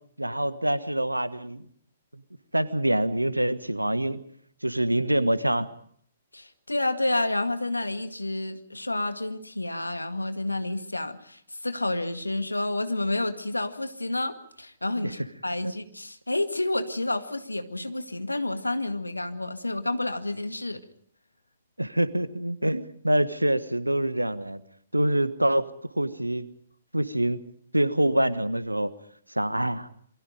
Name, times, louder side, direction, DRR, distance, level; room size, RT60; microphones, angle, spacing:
voice 1, 0.2-1.6 2.1-2.2 2.5-4.2 4.6-5.7 15.0-15.1 15.6-15.7 21.8-24.6 24.9-25.7 26.0-26.5 26.9-27.4 27.7-28.9 29.3-29.9, right 1 dB, 85° right, 14 dB, 1.4 m, -25 dB
voice 2, 6.3-20.8, left 2 dB, 80° left, 8 dB, 2.0 m, -30 dB
27.5 x 23.5 x 5.2 m, 0.62 s
figure-of-eight pair, 120°, 0 cm